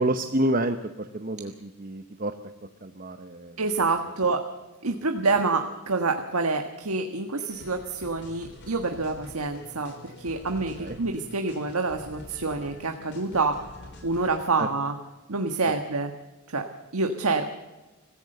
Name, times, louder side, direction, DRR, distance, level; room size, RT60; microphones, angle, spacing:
voice 1, 0.0-2.3 2.8-3.6 4.9-5.0 10.8-11.0 14.6-14.7 15.7-15.8, right 1 dB, 40° right, 8 dB, 0.9 m, -29 dB
voice 2, 3.6-4.4 4.8-9.9 10.2-13.6 14.0-14.9 15.3-16.1 16.5-16.6 16.9-17.4, right 3 dB, 85° right, 5 dB, 1.5 m, -27 dB
sound 1, 7.5-14.4, left 1 dB, 50° left, 4.8 m, -46 dB
25.0 x 15.5 x 6.8 m, 1.1 s
head